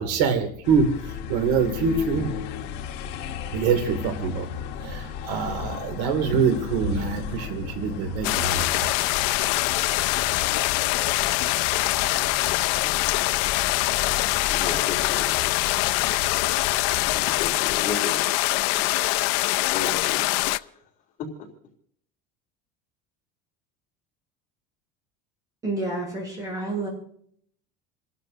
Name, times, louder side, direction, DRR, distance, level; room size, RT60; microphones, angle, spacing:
voice 1, 0.0-2.4 3.5-8.9, right 5 dB, 80° right, 7 dB, 2.4 m, -25 dB
sound 1, 0.6-17.5, left 7 dB, 55° left, 1.3 m, -36 dB
sound 2, 8.2-20.6, left 21 dB, 70° left, 0.5 m, -24 dB
voice 2, 14.6-15.3 17.1-18.3 18.7-20.7 21.2-21.5, left 5 dB, 40° left, -1 dB, 3.4 m, -35 dB
voice 3, 25.6-26.9, right 2 dB, 15° right, -2 dB, 7.8 m, -29 dB
29.0 x 12.0 x 2.7 m, 0.64 s
cardioid pair, 160°, 21 cm